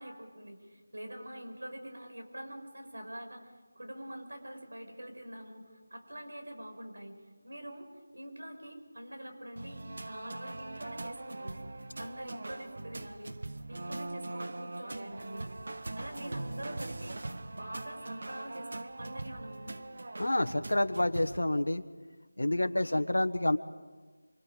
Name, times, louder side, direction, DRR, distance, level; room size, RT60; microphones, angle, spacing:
voice 1, 0.0-7.2 7.4-7.9 8.1-11.6 12.0-13.4 13.7-15.5 15.9-17.2 17.5-19.8 22.6-23.0, right 1 dB, 75° right, 4 dB, 6.2 m, -45 dB
sound 1, 9.6-21.4, right 2 dB, 55° right, 1.2 m, -41 dB
voice 2, 20.2-21.8 22.4-23.6, left 1 dB, 80° left, 8 dB, 1.5 m, -28 dB
28.0 x 25.0 x 5.2 m, 1.4 s
figure-of-eight pair, 170°, 0 cm